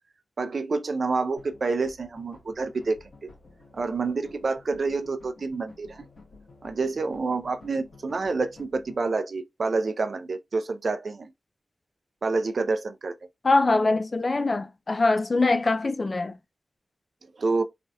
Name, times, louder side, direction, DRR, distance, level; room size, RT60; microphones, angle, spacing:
voice 1, 0.4-3.3 3.7-6.1 6.6-11.3 12.2-13.1 17.4-17.6, right 3 dB, 65° right, 0.4 m, -28 dB
sound 1, 1.4-9.0, left 3 dB, 80° left, 1.4 m, -52 dB
voice 2, 13.4-16.4, left 3 dB, 45° left, 0.3 m, -23 dB
3.3 x 2.7 x 2.2 m
wide cardioid pair, 75°, 0 cm